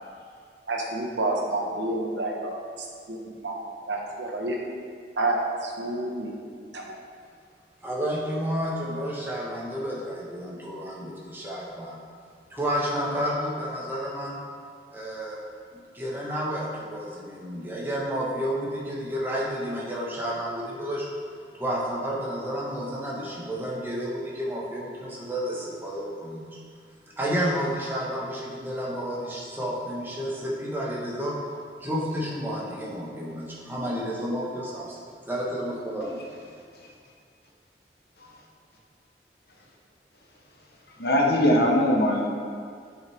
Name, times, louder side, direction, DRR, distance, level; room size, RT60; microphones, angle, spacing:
voice 1, 0.7-3.5 3.9-4.6 5.2-6.3 6.7-6.8, right 2 dB, 90° right, 0 dB, 1.1 m, -29 dB
voice 2, 7.8-12.0 12.5-14.4 14.9-15.4 15.7-21.1 21.5-26.6 27.2-31.3 31.8-35.0 35.3-36.2, equal, 10° right, -5 dB, 1.2 m, -31 dB
voice 3, 41.0-42.3, left 1 dB, 60° left, -1 dB, 1.0 m, -21 dB
8.9 x 5.5 x 3.5 m, 2.2 s
head